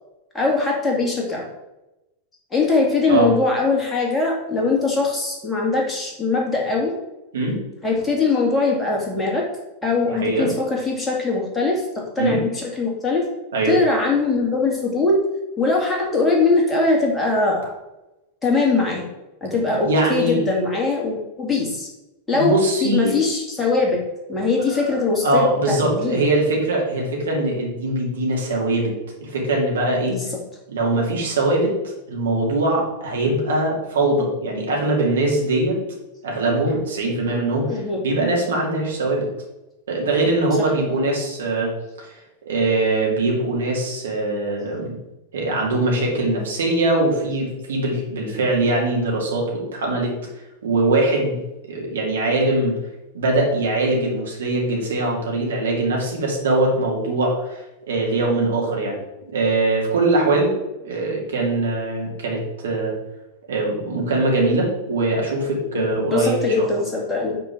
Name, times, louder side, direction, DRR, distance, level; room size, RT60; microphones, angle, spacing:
voice 1, 0.3-1.5 2.5-6.9 7.8-9.4 9.8-13.2 13.7-15.2 15.6-17.7 18.4-19.0 19.4-21.9 22.3-22.6 22.8-24.0 24.3-26.2 30.1-30.4 37.7-38.0 65.7-67.4, left 3 dB, 10° left, -2 dB, 2.4 m, -21 dB
voice 2, 19.8-20.4 22.3-23.2 24.7-24.8 25.2-28.9 29.2-30.2 30.7-31.7 32.1-35.8 36.2-37.7 38.0-39.3 39.9-41.7 42.0-42.1 42.4-45.0 45.3-50.1 50.6-51.4 51.7-52.7 53.1-57.6 57.9-59.0 59.3-60.5 60.8-62.9 63.5-66.8, right 2 dB, 65° right, -2 dB, 2.5 m, -22 dB
6.1 x 4.5 x 6.0 m, 0.98 s
figure-of-eight pair, 90°, 0 cm